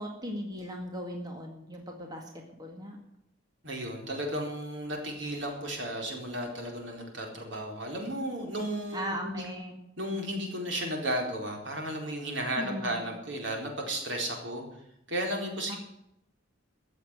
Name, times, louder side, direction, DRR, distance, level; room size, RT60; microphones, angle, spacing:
voice 1, 0.0-3.0 8.9-9.8 12.6-13.1 15.7-15.8, equal, 20° right, 1 dB, 2.0 m, -38 dB
voice 2, 3.6-9.5 10.0-14.6 15.1-15.8, right 1 dB, 65° right, 1 dB, 4.1 m, -34 dB
15.0 x 7.2 x 9.7 m, 0.79 s
head